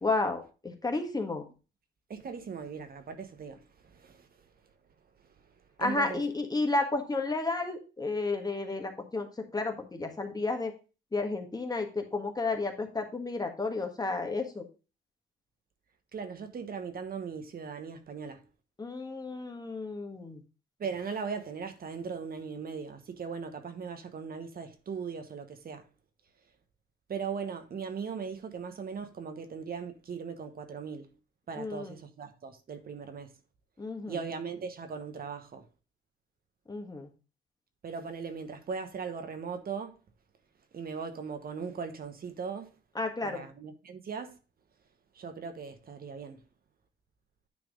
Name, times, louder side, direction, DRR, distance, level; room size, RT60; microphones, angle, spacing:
voice 1, 0.0-1.4 5.8-10.7 11.1-14.7 18.8-20.4 31.6-32.0 33.8-34.2 36.7-37.1 42.9-43.4, left 3 dB, 20° left, 1.5 m, -32 dB
voice 2, 2.1-4.3 5.8-6.2 16.1-18.4 20.8-25.9 27.1-31.1 31.5-33.3 34.1-35.6 37.8-40.0 40.7-42.7 43.2-44.4 45.1-46.4, right 6 dB, 50° right, 1.2 m, -39 dB
9.6 x 3.4 x 5.1 m
cardioid pair, 90°, 20 cm